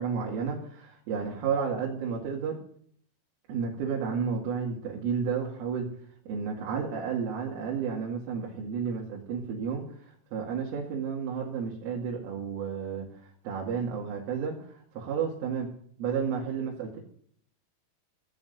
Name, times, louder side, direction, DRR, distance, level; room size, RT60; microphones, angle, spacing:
voice 1, 0.0-2.6 3.5-5.9 6.3-17.0, right 6 dB, 85° right, -2 dB, 4.7 m, -32 dB
25.0 x 15.5 x 2.7 m, 0.63 s
omnidirectional pair, 5.6 m